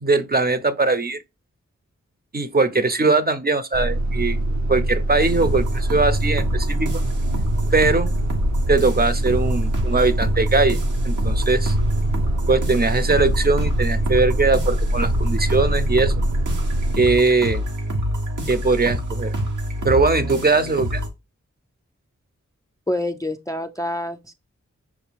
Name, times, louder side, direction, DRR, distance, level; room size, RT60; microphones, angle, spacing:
voice 1, 0.0-1.2 2.3-4.4 4.7-7.0 7.7-8.1 8.7-10.8 11.0-11.7 12.5-16.2 17.0-17.6 18.5-19.3 19.8-21.0, right 3 dB, 30° right, 0.6 m, -20 dB
sound 1, 3.7-17.0, right 1 dB, 65° right, 0.7 m, -24 dB
sound 2, 5.2-21.1, equal, 90° right, 1.0 m, -27 dB
voice 2, 22.9-24.3, left 1 dB, 10° left, 0.4 m, -27 dB
6.0 x 2.3 x 3.4 m
cardioid pair, 45°, 30 cm